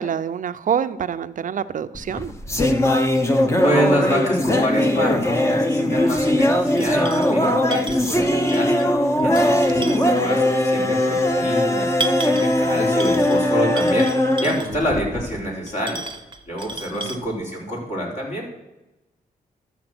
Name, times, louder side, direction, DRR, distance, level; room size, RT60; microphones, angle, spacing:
voice 1, 0.0-2.4 9.7-10.1 16.9-17.3, right 8 dB, 55° right, 11 dB, 0.6 m, -27 dB
sound 1, 1.9-15.4, left 1 dB, 20° left, 1.1 m, -20 dB
voice 2, 3.3-16.0 16.5-18.5, equal, 45° left, -2 dB, 4.2 m, -27 dB
sound 2, 6.1-6.3 6.8-7.4 7.7-8.8 9.2-10.3 11.0-11.1 11.7-12.6 13.0-13.5 13.8-14.8 15.7-17.2, right 3 dB, 30° right, 0.9 m, -33 dB
12.0 x 7.2 x 6.1 m, 0.99 s
cardioid pair, 80°, 16 cm